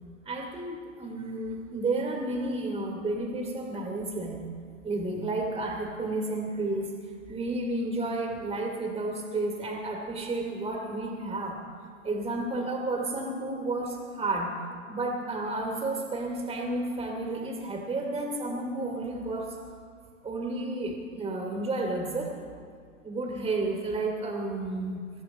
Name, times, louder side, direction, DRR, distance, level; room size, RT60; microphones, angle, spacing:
voice 1, 0.2-4.4 4.8-6.9 7.3-11.6 12.0-14.5 14.9-19.6 20.2-22.3 23.0-25.0, right 2 dB, 15° right, -1 dB, 2.3 m, -31 dB
28.0 x 14.0 x 2.9 m, 2.1 s
figure-of-eight pair, 100°, 40 cm